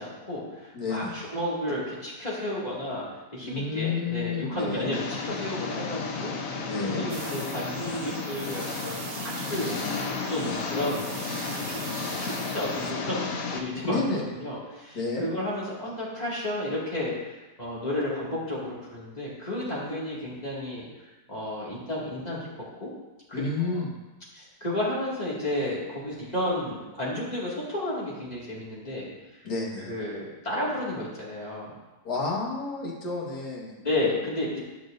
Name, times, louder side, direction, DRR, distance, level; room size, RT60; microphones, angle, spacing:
voice 1, 0.0-3.1 3.3-6.3 6.8-9.8 10.3-11.1 11.5-11.8 12.2-17.1 17.6-20.9 21.3-22.5 22.8-22.9 23.3-23.7 24.3-29.1 29.9-31.7 33.8-34.6, left 1 dB, 25° left, -7 dB, 2.1 m, -32 dB
voice 2, 0.7-1.2 3.4-4.9 6.7-7.0 13.9-14.3 14.9-15.3 23.3-23.9 29.4-29.9 32.0-33.7, left 3 dB, 85° left, -2 dB, 2.1 m, -30 dB
Engine, 4.9-13.6, left 4 dB, 60° left, 1.2 m, -33 dB
sound 1, 7.1-12.9, right 7 dB, 75° right, 1.2 m, -42 dB
11.5 x 6.2 x 2.6 m, 1.1 s
omnidirectional pair, 1.7 m